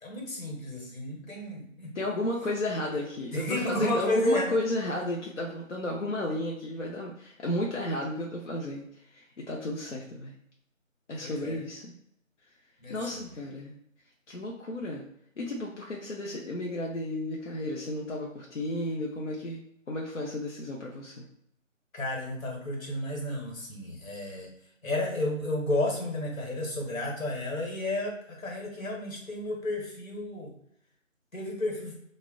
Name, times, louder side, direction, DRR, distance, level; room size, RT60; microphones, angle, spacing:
voice 1, 0.0-1.9 3.3-4.6 11.2-11.6 12.8-13.2 21.9-24.5 24.8-30.5 31.3-31.9, left 1 dB, 80° left, 0 dB, 1.1 m, -32 dB
voice 2, 1.9-8.9 9.1-10.3 11.1-11.9 12.9-13.7 14.3-15.0 15.4-19.6 19.9-21.2, left 1 dB, 60° left, -2 dB, 0.5 m, -33 dB
2.2 x 2.0 x 3.5 m, 0.73 s
figure-of-eight pair, 175°, 40 cm